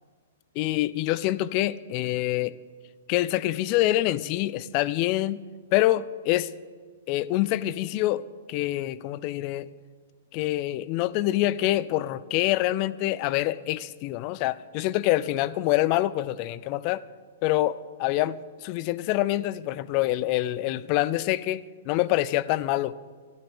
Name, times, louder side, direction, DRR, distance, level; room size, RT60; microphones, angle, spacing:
voice 1, 0.6-2.6 3.1-5.4 5.7-6.5 7.1-8.2 8.5-9.7 10.3-17.0 17.4-22.9, left 15 dB, 40° left, 17 dB, 0.5 m, -26 dB
12.0 x 11.5 x 6.9 m, 1.6 s
hypercardioid pair, 120°, 0 cm